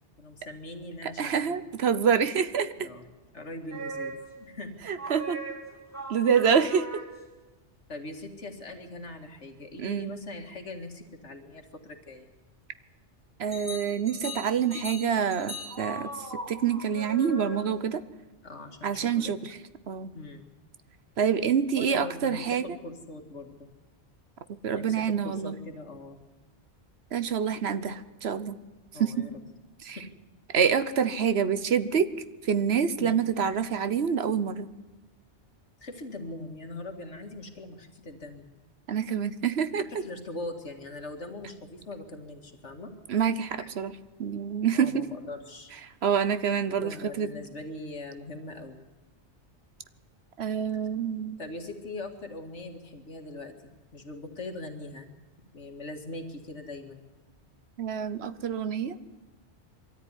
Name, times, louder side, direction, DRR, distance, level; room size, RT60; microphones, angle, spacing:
voice 1, 0.2-1.6 2.8-3.1 3.3-4.7 7.9-12.3 18.4-19.3 20.1-20.5 21.8-23.7 24.7-26.2 28.9-29.3 30.0-30.1 33.0-33.2 35.8-38.5 39.9-42.9 43.6-43.7 44.7-45.7 46.7-48.8 51.4-55.1 55.5-57.0, left 2 dB, 75° left, 4 dB, 2.5 m, -41 dB
voice 2, 1.2-2.9 4.9-5.4 6.1-6.9 9.8-10.1 13.4-16.1 16.5-18.0 18.8-19.5 19.9-20.1 21.2-22.6 24.6-25.6 27.1-28.6 29.0-29.3 29.9-30.0 30.5-32.1 32.5-34.7 38.9-39.8 43.1-43.9 44.2-45.1 46.0-47.3 50.4-51.4 57.8-59.0, right 7 dB, 65° right, 13 dB, 1.1 m, -26 dB
sound 1, 3.7-4.4 5.0-7.4 13.5-17.9, right 2 dB, 15° right, 3.6 m, -39 dB
22.5 x 13.5 x 9.8 m, 1.2 s
omnidirectional pair, 1.2 m